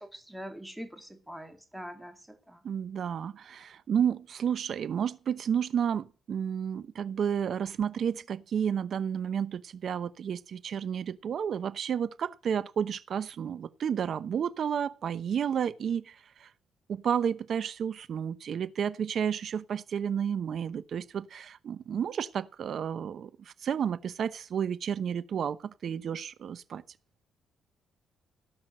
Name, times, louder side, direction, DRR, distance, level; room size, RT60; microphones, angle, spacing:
voice 1, 0.0-2.6, equal, 5° right, 2.5 m, -44 dB
voice 2, 2.6-16.2 16.4-16.5 16.9-23.3 23.6-26.8, right 8 dB, 60° right, 0.8 m, -31 dB
17.5 x 5.9 x 6.6 m
cardioid pair, 90°, 0 cm